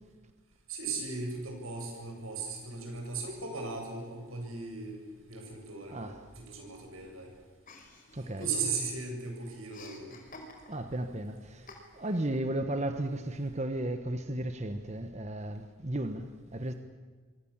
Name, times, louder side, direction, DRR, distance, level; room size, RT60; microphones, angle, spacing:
voice 1, 0.7-5.0 5.3-7.3 8.4-10.2, right 4 dB, 85° right, 8.0 m, -37 dB
voice 2, 5.9-6.2 8.1-8.5 10.7-16.7, right 1 dB, 35° right, 1.3 m, -34 dB
Chuckle chortle, 7.7-9.0 9.3-11.0 11.7-12.3, left 2 dB, 40° left, 4.5 m, -49 dB
27.0 x 24.0 x 7.4 m
head